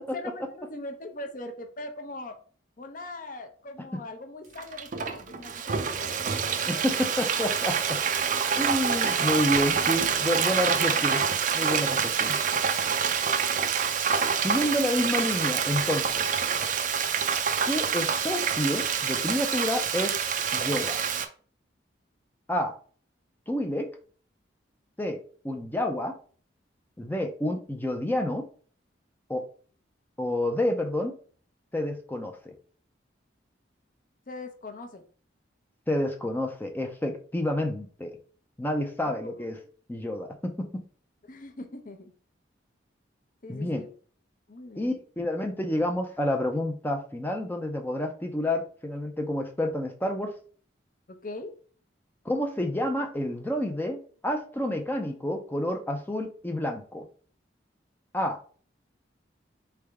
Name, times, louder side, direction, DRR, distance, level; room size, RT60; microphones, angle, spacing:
voice 1, 0.1-2.4 2.8-6.2 34.3-35.0 39.0-39.5 41.3-42.1 43.4-43.9 44.5-45.0 51.1-51.5, left 2 dB, 45° left, 6 dB, 0.7 m, -41 dB
Frying (food), 4.6-21.3, right 6 dB, 45° right, 0.4 m, -26 dB
voice 2, 6.6-8.0 8.6-11.2 11.5-12.4 14.4-16.2 17.6-20.1 20.5-21.0 22.5-22.7 23.5-23.9 25.0-25.2 25.4-26.1 27.0-28.4 29.3-29.4 30.2-31.2 31.7-32.5 35.9-38.2 38.6-39.5 39.9-40.8 43.5-43.8 44.8-50.3 52.2-57.1 58.1-58.4, left 1 dB, 10° left, 4 dB, 0.5 m, -29 dB
3.9 x 3.4 x 3.4 m, 0.43 s
head